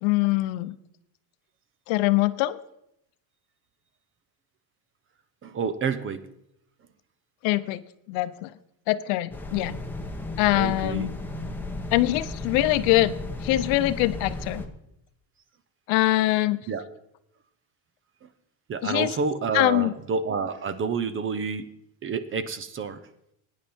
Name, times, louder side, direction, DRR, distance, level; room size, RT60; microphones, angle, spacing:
voice 1, 0.0-0.7 1.9-2.6 7.4-7.8 8.1-8.5 8.9-9.8 10.4-11.1 11.9-13.1 13.4-14.6 15.9-16.6 18.8-19.1 19.5-19.9, left 17 dB, 70° left, 14 dB, 0.8 m, -23 dB
voice 2, 5.4-6.3 10.5-11.1 16.7-17.0 18.2-18.3 18.7-21.7 22.0-23.0, right 5 dB, 25° right, 14 dB, 0.7 m, -29 dB
sound 1, 9.3-14.7, left 2 dB, 5° left, 1.0 m, -34 dB
17.0 x 9.7 x 4.4 m, 0.79 s
cardioid pair, 135°, 48 cm